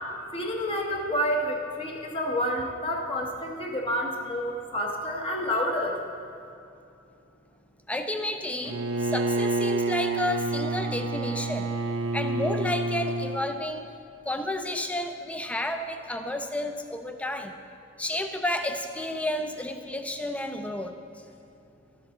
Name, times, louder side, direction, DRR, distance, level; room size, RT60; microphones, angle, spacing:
voice 1, 0.3-6.0, equal, 25° left, 0 dB, 0.9 m, -29 dB
voice 2, 7.9-11.7 12.1-14.0 14.3-17.6 18.0-21.0, left 1 dB, 5° left, 6 dB, 0.5 m, -31 dB
Bowed string instrument, 8.6-13.4, right 2 dB, 70° right, 0.6 m, -28 dB
12.0 x 7.3 x 3.8 m, 2.7 s
head